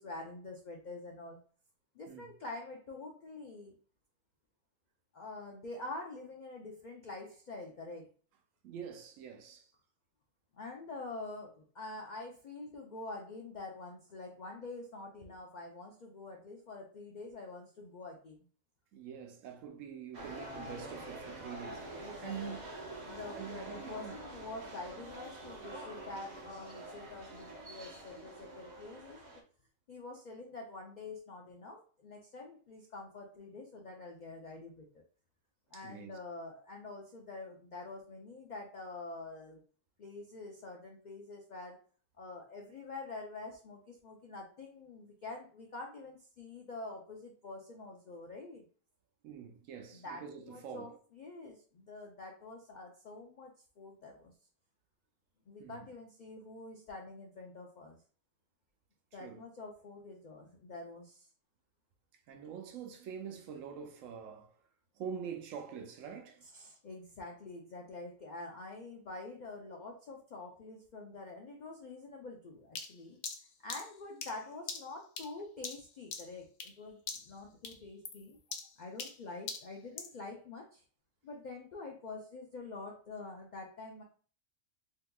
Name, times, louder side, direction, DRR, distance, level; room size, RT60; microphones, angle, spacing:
voice 1, 0.0-1.4 1.9-3.7 5.1-8.1 10.5-18.4 22.0-22.6 23.1-29.3 29.9-35.0 35.7-39.6 40.0-41.8 42.1-48.6 49.9-54.3 55.5-58.0 59.1-61.3 66.4-73.2 73.6-78.4 78.8-80.8 81.2-84.0, left 3 dB, 70° left, 0.4 m, -46 dB
voice 2, 8.6-9.7 18.9-22.6 23.4-24.2 35.7-36.2 49.2-51.0 55.6-55.8 59.2-59.4 62.3-64.6 65.0-66.4, right 7 dB, 80° right, 1.0 m, -45 dB
sound 1, 20.1-29.4, right 1 dB, 45° right, 0.6 m, -46 dB
sound 2, 72.8-76.8 77.1-77.4 77.6-80.2, left 5 dB, 90° left, 1.0 m, -43 dB
3.6 x 2.7 x 2.2 m
omnidirectional pair, 1.4 m